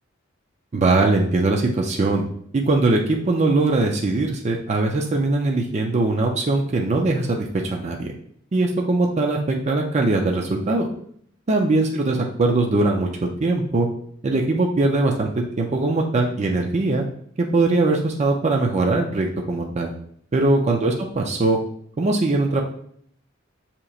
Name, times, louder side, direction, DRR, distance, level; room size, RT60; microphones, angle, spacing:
voice 1, 0.7-2.2 2.5-8.1 8.5-10.9 11.5-13.1 13.4-13.9 14.2-17.0 17.4-19.9 20.3-21.6 22.0-22.6, right 2 dB, 35° right, 1 dB, 0.4 m, -21 dB
6.4 x 2.9 x 2.4 m, 0.64 s
head